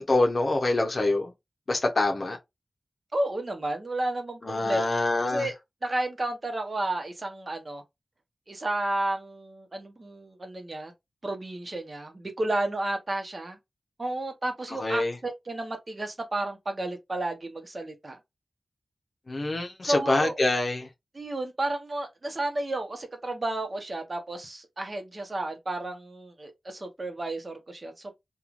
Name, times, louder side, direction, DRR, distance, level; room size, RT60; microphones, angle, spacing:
voice 1, 0.0-1.3 1.7-2.4 4.4-5.5 14.8-15.2 19.3-20.9, left 2 dB, 55° left, 0.6 m, -25 dB
voice 2, 3.1-4.8 5.2-5.5 5.8-7.8 8.5-10.9 11.2-13.6 14.0-18.2 19.8-20.4 21.1-28.1, right 1 dB, 45° right, 0.8 m, -32 dB
3.0 x 2.3 x 2.4 m
wide cardioid pair, 60°, 0 cm